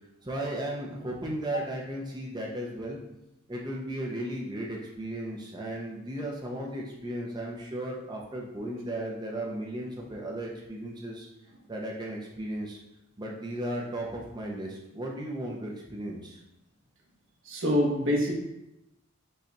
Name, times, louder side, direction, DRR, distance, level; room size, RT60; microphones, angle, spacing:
voice 1, 0.2-3.0 3.5-11.3 11.7-12.8 13.2-16.4, right 1 dB, 20° right, -1 dB, 0.6 m, -35 dB
voice 2, 17.4-18.3, left 1 dB, 65° right, -2 dB, 1.1 m, -25 dB
5.4 x 2.4 x 4.0 m, 0.89 s
head